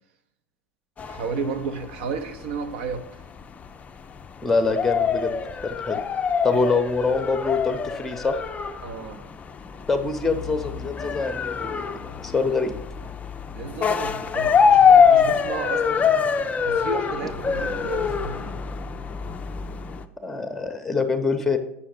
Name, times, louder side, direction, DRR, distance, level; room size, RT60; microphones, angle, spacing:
sound 1, 1.0-20.1, left 6 dB, 20° left, 0.4 m, -24 dB
voice 1, 1.1-3.1 8.8-9.2 13.5-16.1 16.6-18.6, right 5 dB, 55° right, 0.8 m, -32 dB
voice 2, 4.4-5.4 5.6-6.0 6.4-8.4 9.9-12.7 20.2-21.6, left 4 dB, 5° left, 0.8 m, -25 dB
8.4 x 6.1 x 3.9 m
figure-of-eight pair, 85°, 7 cm